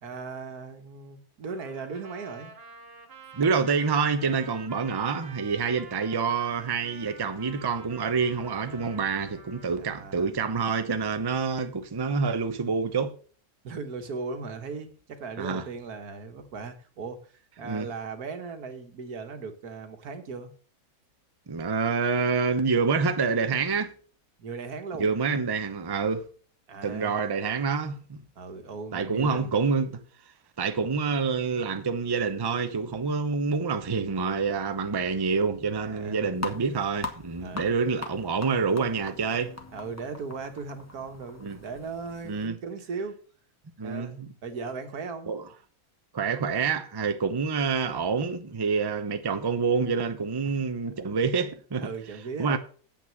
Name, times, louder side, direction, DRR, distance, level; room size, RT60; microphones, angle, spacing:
voice 1, 0.0-2.5 9.8-10.4 13.6-20.5 24.4-25.1 26.7-27.3 28.4-29.5 35.8-36.3 37.4-37.7 39.7-43.2 43.8-45.3 50.5-50.6 51.8-52.6, right 4 dB, 90° right, 1.8 m, -38 dB
Trumpet, 1.5-9.8, right 4 dB, 45° right, 1.6 m, -48 dB
voice 2, 3.3-13.1 15.4-15.6 17.6-17.9 21.5-23.9 25.0-26.2 26.8-28.2 28.9-30.0 30.6-39.5 41.4-41.6 42.3-42.6 43.8-44.3 45.3-45.4 46.1-51.9 52.4-52.6, right 5 dB, 25° right, 0.6 m, -27 dB
sound 1, 36.3-42.5, left 2 dB, 10° left, 1.2 m, -41 dB
8.3 x 6.1 x 7.5 m
omnidirectional pair, 1.5 m